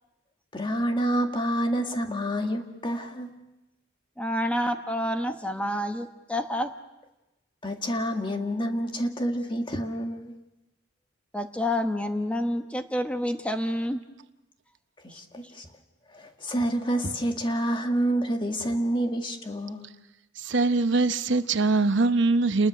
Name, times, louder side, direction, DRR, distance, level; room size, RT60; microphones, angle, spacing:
voice 1, 0.5-3.4 7.6-10.3 15.0-15.7 16.1-19.9, right 1 dB, 25° left, 4 dB, 1.8 m, -28 dB
voice 2, 4.2-6.7 11.3-14.0, left 1 dB, 5° left, 6 dB, 1.0 m, -28 dB
voice 3, 20.4-22.7, right 3 dB, 65° right, 10 dB, 0.9 m, -22 dB
29.5 x 20.5 x 6.3 m, 0.98 s
head